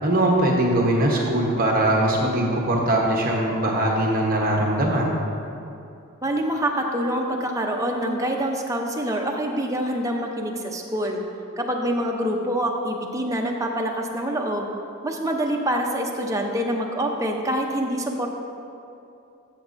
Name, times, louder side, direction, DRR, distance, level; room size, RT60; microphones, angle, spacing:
voice 1, 0.0-5.2, right 1 dB, 40° right, -1 dB, 1.0 m, -21 dB
voice 2, 6.2-11.2 11.6-14.7 15.0-18.3, right 1 dB, 15° right, 1 dB, 0.6 m, -26 dB
13.5 x 7.1 x 2.6 m, 2.7 s
head